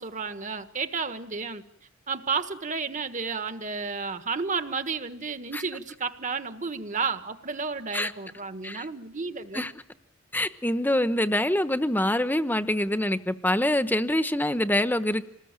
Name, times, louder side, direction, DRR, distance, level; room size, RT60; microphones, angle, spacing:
voice 1, 0.0-1.6 2.1-9.7, right 4 dB, 40° right, 9 dB, 1.5 m, -32 dB
voice 2, 10.3-15.2, left 1 dB, 10° left, 11 dB, 1.1 m, -25 dB
26.0 x 20.0 x 9.0 m, 0.79 s
head